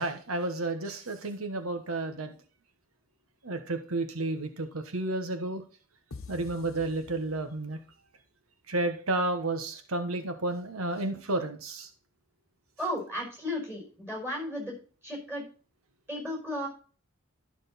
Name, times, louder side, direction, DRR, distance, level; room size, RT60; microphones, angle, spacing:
voice 1, 0.0-2.3 3.4-5.6 6.3-7.8 8.7-11.9, right 2 dB, 85° right, 7 dB, 1.2 m, -31 dB
sound 1, 6.1-7.9, left 4 dB, 80° left, 1.0 m, -47 dB
voice 2, 12.8-14.7 15.0-15.4 16.1-16.7, left 1 dB, 10° right, -2 dB, 5.3 m, -34 dB
12.5 x 6.3 x 4.1 m, 0.38 s
head